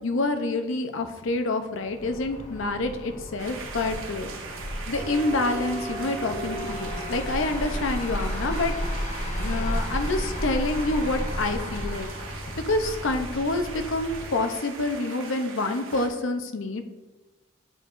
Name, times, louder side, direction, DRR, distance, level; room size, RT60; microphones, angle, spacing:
voice 1, 0.0-4.3 4.9-8.7 9.4-12.1 12.7-16.8, left 2 dB, 65° left, 7 dB, 0.6 m, -27 dB
sound 1, 1.8-14.5, equal, 35° left, 0.9 m, -33 dB
sound 2, 3.4-16.1, right 4 dB, 75° right, 1.0 m, -40 dB
sound 3, 4.9-12.5, right 1 dB, 20° right, 1.3 m, -40 dB
9.9 x 4.6 x 2.5 m, 1.2 s
head